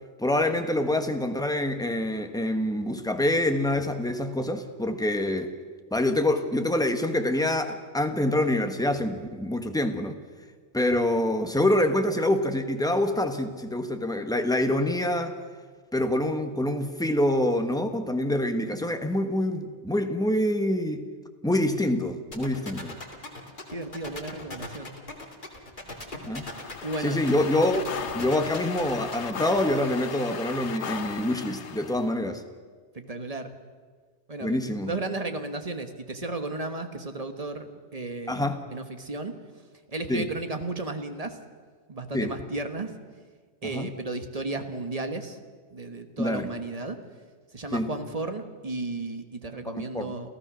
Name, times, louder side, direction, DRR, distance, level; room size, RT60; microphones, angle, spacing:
voice 1, 0.2-5.5 5.9-10.2 10.7-15.4 15.9-21.0 21.4-23.0 26.2-26.5 27.0-27.8 28.1-32.4 34.4-34.9 38.3-38.6 40.1-40.3 42.1-42.3 43.7-43.9 46.2-46.5 47.7-47.9 49.6-50.1, left 1 dB, 5° left, 6 dB, 1.2 m, -26 dB
sound 1, 22.3-29.6, left 2 dB, 45° left, 2.6 m, -39 dB
voice 2, 23.7-24.9 26.8-27.2 32.9-33.5 34.3-34.6 34.8-39.4 39.9-41.4 41.9-42.9 43.6-45.4 45.7-47.0 47.5-50.3, right 2 dB, 35° right, 7 dB, 1.5 m, -34 dB
sound 2, 26.4-32.1, left 7 dB, 75° left, 1.2 m, -37 dB
28.5 x 15.0 x 6.3 m, 1.5 s
omnidirectional pair, 1.2 m